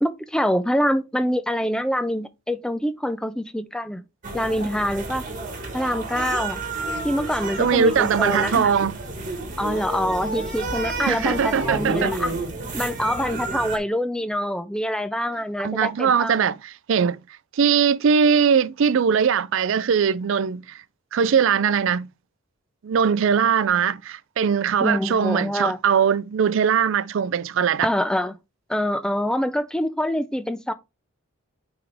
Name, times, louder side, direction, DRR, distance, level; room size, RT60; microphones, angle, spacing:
voice 1, 0.0-4.0 4.3-5.3 5.7-6.6 7.0-8.7 9.6-12.3 12.7-16.4 24.8-25.8 27.8-28.3 28.7-30.7, equal, 5° left, 0.4 m, -25 dB
sound 1, 4.2-13.8, right 2 dB, 35° right, 1.5 m, -30 dB
voice 2, 7.6-9.0 11.1-12.1 15.6-17.2 17.5-20.8 21.1-22.1 22.8-27.9, right 7 dB, 60° right, 0.4 m, -21 dB
9.4 x 3.6 x 3.4 m
head